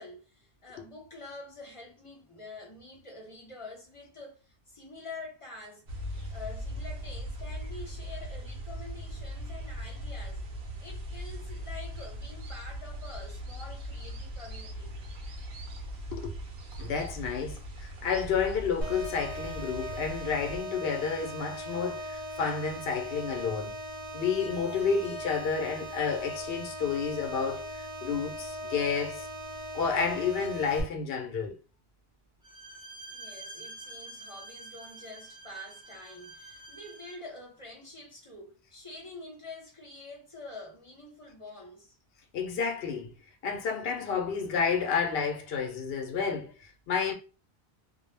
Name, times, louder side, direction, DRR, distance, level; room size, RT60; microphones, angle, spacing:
voice 1, 0.0-5.8 6.3-10.4 10.8-15.0 33.1-41.9, left 2 dB, 30° left, 0.9 m, -46 dB
sound 1, 5.9-20.6, equal, 85° right, 0.9 m, -39 dB
voice 2, 16.8-23.7 24.1-27.7 28.0-29.3 29.7-31.6 42.3-43.1 43.4-47.1, left 6 dB, 70° left, 0.8 m, -30 dB
sound 2, 18.8-30.8, equal, 50° right, 0.8 m, -39 dB
Bowed string instrument, 32.4-37.3, right 2 dB, 5° right, 0.4 m, -47 dB
2.3 x 2.0 x 3.1 m
omnidirectional pair, 1.1 m